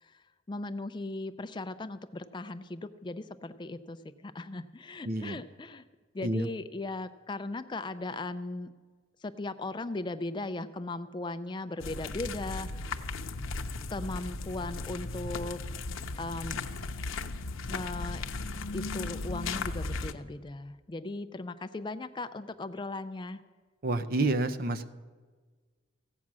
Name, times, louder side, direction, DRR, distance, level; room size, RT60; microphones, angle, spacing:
voice 1, 0.0-5.8 6.1-8.7 9.2-13.1 13.9-15.6 16.2-16.6 17.7-18.2 18.7-23.4, left 2 dB, 25° left, 11 dB, 0.4 m, -38 dB
voice 2, 5.1-5.4 6.2-6.5 23.8-24.9, right 2 dB, 45° right, 9 dB, 0.6 m, -29 dB
sound 1, 11.8-20.1, left 3 dB, 90° left, 0.7 m, -36 dB
15.5 x 8.5 x 6.1 m, 1.4 s
head